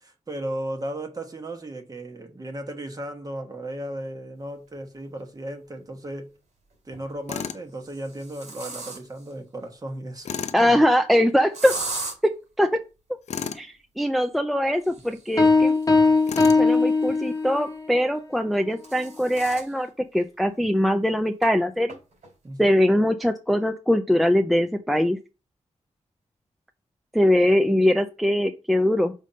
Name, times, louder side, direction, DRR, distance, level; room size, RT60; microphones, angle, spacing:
voice 1, 0.3-6.3 6.8-10.3 10.6-10.8 22.4-22.7, right 1 dB, 30° right, 1.2 m, -35 dB
sound 1, 5.2-5.3 6.7-7.1 7.7-9.3 11.5-12.2 14.7-17.4 18.4-19.7 20.2-20.3 20.6-20.7 21.4-21.5 21.9-22.3, right 3 dB, 80° right, 2.7 m, -38 dB
Tools, 7.3-7.6 10.2-10.6 13.3-13.7 16.3-16.7, left 7 dB, 70° left, 0.5 m, -32 dB
voice 2, 10.5-11.8 12.2-12.8 13.5-15.8 16.6-22.0 22.6-25.2 27.1-29.1, equal, ahead, 0.5 m, -22 dB
sound 2, 15.4-17.8, left 3 dB, 25° left, 1.0 m, -19 dB
5.5 x 3.4 x 5.1 m
wide cardioid pair, 95°, 12 cm